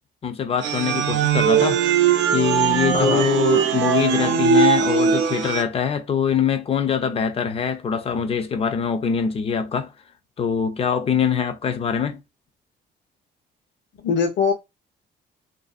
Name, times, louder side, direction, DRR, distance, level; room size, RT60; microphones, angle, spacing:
voice 1, 0.2-1.8 2.3-9.9 10.4-12.2, left 7 dB, 30° left, 0.5 m, -23 dB
sound 1, 0.6-5.6, right 7 dB, 70° right, 0.5 m, -20 dB
voice 2, 2.9-3.3 14.0-14.5, left 5 dB, 70° left, 0.8 m, -22 dB
2.6 x 2.4 x 2.4 m
cardioid pair, 130°, 19 cm